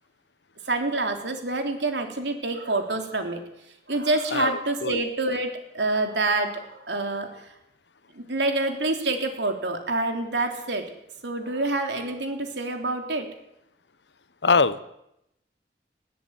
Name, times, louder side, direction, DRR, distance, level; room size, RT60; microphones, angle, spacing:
voice 1, 0.7-3.4 3.9-7.5 8.1-10.8 11.2-13.3, right 2 dB, 85° right, 4 dB, 3.6 m, -27 dB
voice 2, 4.3-5.0 14.4-14.8, left 4 dB, 85° left, 15 dB, 1.1 m, -23 dB
19.5 x 14.5 x 9.4 m, 0.82 s
head